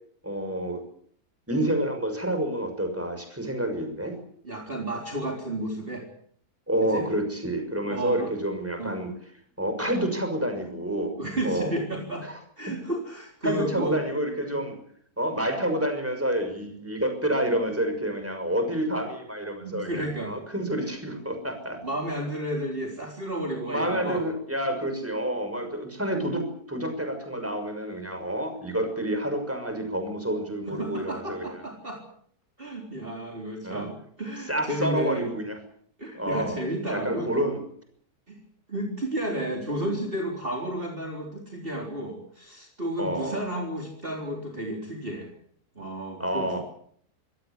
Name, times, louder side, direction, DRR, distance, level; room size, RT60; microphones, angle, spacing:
voice 1, 0.2-0.8 1.5-4.2 6.7-9.1 9.6-11.1 11.4-11.7 12.2-12.3 13.4-14.7 15.2-21.8 23.7-31.4 33.6-33.9 34.5-35.6 36.1-36.6 36.9-37.6 43.0-43.4 46.2-46.6, right 1 dB, 10° right, 6 dB, 6.3 m, -28 dB
voice 2, 4.4-6.1 6.8-7.1 7.8-8.3 8.8-9.0 11.2-12.3 12.6-14.0 19.5-20.4 20.8-20.9 21.8-24.2 30.8-32.0 32.6-35.3 36.0-37.3 38.3-38.4 38.7-45.3 45.7-46.6, right 1 dB, 35° right, 0 dB, 4.2 m, -32 dB
25.5 x 17.5 x 8.3 m, 0.63 s
omnidirectional pair, 1.6 m